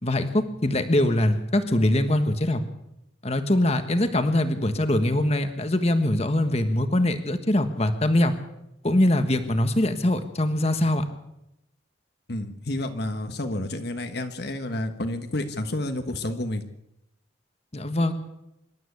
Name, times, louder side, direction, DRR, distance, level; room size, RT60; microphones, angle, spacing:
voice 1, 0.0-2.6 3.2-8.3 8.8-11.0 17.7-18.1, left 1 dB, 30° left, 8 dB, 1.5 m, -23 dB
voice 2, 12.3-16.6, left 1 dB, 55° left, 7 dB, 1.4 m, -30 dB
25.5 x 12.5 x 8.3 m, 0.86 s
head